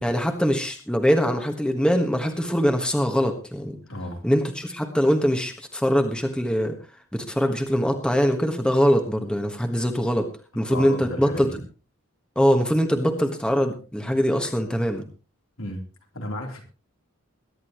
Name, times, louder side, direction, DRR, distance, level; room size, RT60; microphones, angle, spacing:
voice 1, 0.0-3.8 4.2-6.7 7.1-10.3 10.5-11.5 12.3-15.0, equal, 5° left, 4 dB, 1.4 m, -22 dB
voice 2, 3.9-4.2 10.7-11.5 15.6-15.8 16.1-16.7, left 1 dB, 75° left, 2 dB, 3.6 m, -33 dB
22.0 x 11.0 x 3.1 m, 0.33 s
head